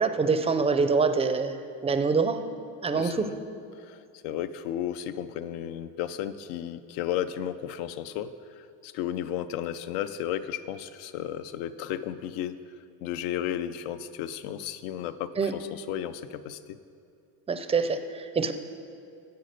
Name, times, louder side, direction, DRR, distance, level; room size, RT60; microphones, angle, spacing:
voice 1, 0.0-1.6 1.8-2.4 2.8-3.2 15.4-15.5 17.5-18.5, right 4 dB, 15° right, 9 dB, 0.4 m, -25 dB
voice 2, 2.9-3.3 3.8-8.3 8.6-12.6 13.0-16.8, left 10 dB, 85° left, 12 dB, 0.7 m, -34 dB
10.5 x 7.7 x 6.5 m, 2.4 s
cardioid pair, 135°, 44 cm